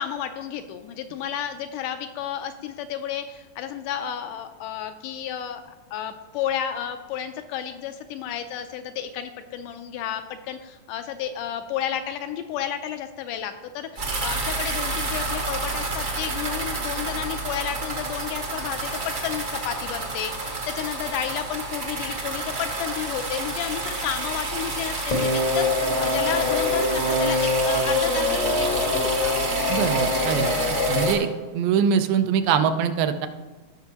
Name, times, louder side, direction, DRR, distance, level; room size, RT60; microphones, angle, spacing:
voice 1, 0.0-5.6 5.9-29.3, left 9 dB, 80° left, 8 dB, 2.0 m, -32 dB
sound 1, 14.0-31.2, right 2 dB, 55° right, 0.8 m, -29 dB
sound 2, 25.1-31.1, left 2 dB, 60° left, 0.8 m, -24 dB
voice 2, 29.7-30.6 30.9-33.3, right 7 dB, 85° right, 8 dB, 2.3 m, -23 dB
16.0 x 6.0 x 2.9 m, 1.3 s
omnidirectional pair, 3.9 m